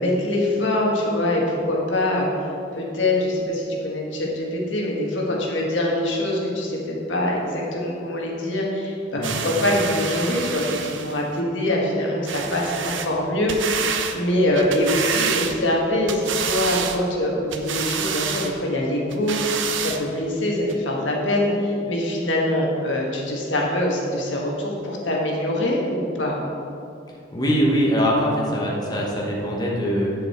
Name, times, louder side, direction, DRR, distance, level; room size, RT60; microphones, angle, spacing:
voice 1, 0.0-2.3 2.7-26.4, left 1 dB, 80° left, -2 dB, 1.5 m, -24 dB
sound 1, 9.2-11.2 12.3-13.1 13.5-14.2 14.5-15.8 16.1-17.0 17.5-18.5 19.1-20.0 20.7-20.8, right 7 dB, 85° right, 0.6 m, -27 dB
voice 2, 27.3-30.1, equal, 20° left, -3 dB, 1.1 m, -22 dB
8.2 x 6.5 x 4.4 m, 2.6 s
head